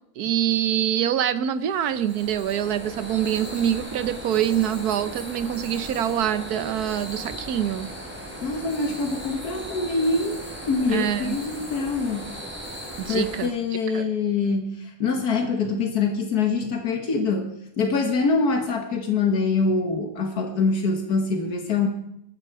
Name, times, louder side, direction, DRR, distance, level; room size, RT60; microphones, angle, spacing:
voice 1, 0.2-7.9 10.9-11.4 13.0-13.5 13.9-14.1, right 10 dB, 85° right, 14 dB, 1.4 m, -25 dB
sound 1, 1.6-13.5, equal, 5° right, 3.7 m, -37 dB
voice 2, 8.4-10.4 10.7-12.2 13.1-17.5 17.8-21.9, left 4 dB, 80° left, 4 dB, 2.0 m, -24 dB
21.0 x 13.5 x 4.8 m, 0.77 s
omnidirectional pair, 1.6 m